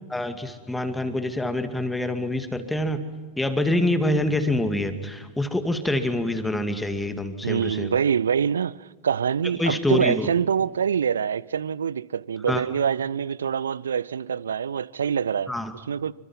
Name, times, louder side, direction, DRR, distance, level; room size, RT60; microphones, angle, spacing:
voice 1, 0.1-3.0 3.4-7.9 9.6-10.3 12.5-12.6 15.5-15.7, left 1 dB, 5° left, 2.3 m, -26 dB
voice 2, 7.4-15.5 15.9-16.1, right 7 dB, 70° right, 0.6 m, -25 dB
27.5 x 25.0 x 5.7 m
figure-of-eight pair, 90°, 0 cm